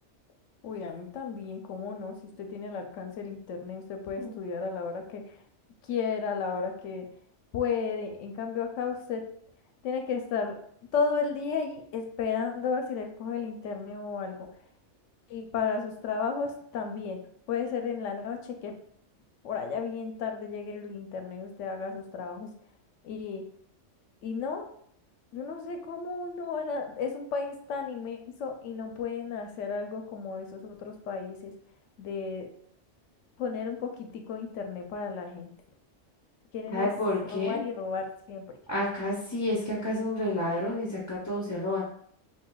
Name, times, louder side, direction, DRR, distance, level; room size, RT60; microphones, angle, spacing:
voice 1, 0.6-5.4 5.9-7.1 7.5-9.2 9.8-10.6 10.9-14.5 15.3-18.7 19.4-22.5 23.0-23.4 24.2-24.7 25.3-31.5 32.0-32.5 33.4-35.5 36.5-36.9 37.2-38.5, left 5 dB, 85° left, 4 dB, 1.0 m, -33 dB
voice 2, 36.7-37.6 38.7-41.8, left 1 dB, 20° left, -5 dB, 0.6 m, -30 dB
5.5 x 2.6 x 2.3 m, 0.65 s
omnidirectional pair, 1.2 m